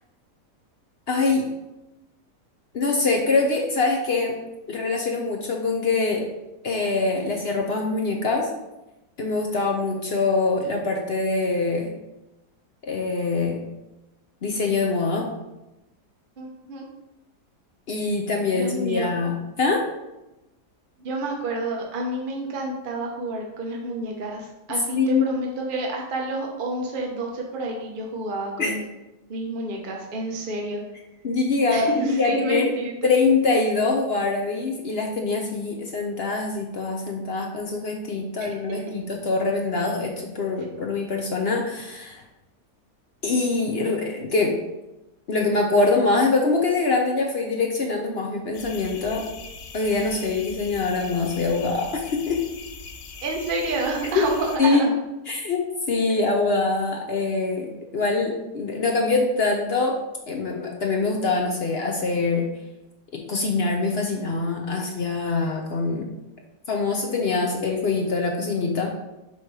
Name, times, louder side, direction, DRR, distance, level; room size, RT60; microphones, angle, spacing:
voice 1, 1.1-1.5 2.7-4.3 4.7-6.3 6.6-8.5 9.2-11.9 12.8-13.6 14.4-15.3 17.9-19.8 25.0-25.2 28.6-28.7 31.2-32.7 33.0-42.2 43.2-44.5 45.3-49.2 49.7-52.4 54.6-54.9 55.3-55.6 55.9-57.7 57.9-60.0 60.3-62.5 63.3-66.1 66.7-68.9, left 3 dB, 55° left, 1 dB, 0.7 m, -24 dB
voice 2, 16.4-16.8 18.5-19.1 21.0-28.8 29.3-30.8 31.7-33.1 38.4-38.6 38.9-39.0 53.2-54.9, right 2 dB, 50° right, 0 dB, 0.6 m, -29 dB
sound 1, 48.5-54.6, left 4 dB, 75° left, 1.2 m, -41 dB
6.8 x 3.1 x 4.7 m, 0.96 s
omnidirectional pair, 1.7 m